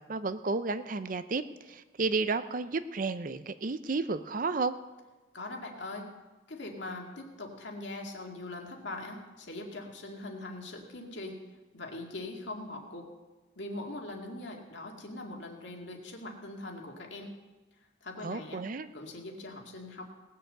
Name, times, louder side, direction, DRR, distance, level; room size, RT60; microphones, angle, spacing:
voice 1, 0.0-4.7 18.2-18.9, right 3 dB, 45° right, 12 dB, 0.5 m, -32 dB
voice 2, 5.3-6.1 6.5-11.4 11.7-13.1 13.6-17.3 18.0-18.6 18.9-20.1, left 2 dB, 70° left, 1 dB, 2.1 m, -41 dB
18.5 x 6.9 x 7.8 m, 1.2 s
head